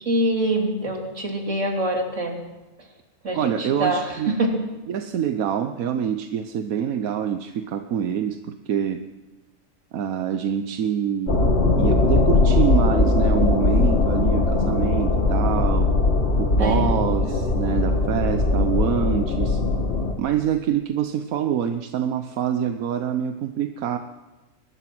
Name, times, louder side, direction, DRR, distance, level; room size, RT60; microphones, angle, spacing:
voice 1, 0.0-2.4 3.2-4.5 16.6-16.9, right 1 dB, 60° right, 2 dB, 3.5 m, -24 dB
voice 2, 3.3-4.3 4.9-9.0 9.9-11.4 11.8-15.9 16.4-19.6 20.2-24.0, right 9 dB, 85° right, 8 dB, 1.3 m, -26 dB
sound 1, 11.3-20.1, left 3 dB, 50° left, 2.1 m, -20 dB
22.5 x 19.5 x 6.1 m, 1.1 s
omnidirectional pair, 1.4 m